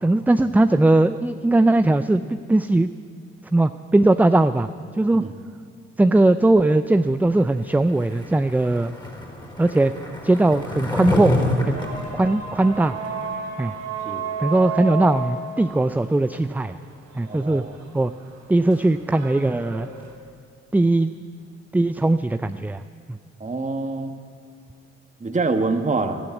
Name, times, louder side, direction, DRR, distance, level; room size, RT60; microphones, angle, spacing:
voice 1, 0.0-2.9 3.5-4.7 5.0-5.2 6.0-8.9 9.6-9.9 10.2-11.4 11.6-11.8 12.1-12.9 13.6-13.7 14.4-16.8 17.2-17.6 17.9-18.1 18.5-19.9 20.7-21.1 21.7-22.8 23.1-23.2, right 2 dB, 5° right, 11 dB, 0.4 m, -19 dB
Skateboard, 7.9-13.3, left 1 dB, 15° left, 3.8 m, -28 dB
sound 1, 11.7-20.1, right 5 dB, 65° right, 3.1 m, -33 dB
voice 2, 17.3-17.7 23.4-24.1 25.2-26.2, right 3 dB, 20° right, 6 dB, 1.4 m, -25 dB
13.0 x 12.5 x 8.2 m, 2.1 s
hypercardioid pair, 45°, 33 cm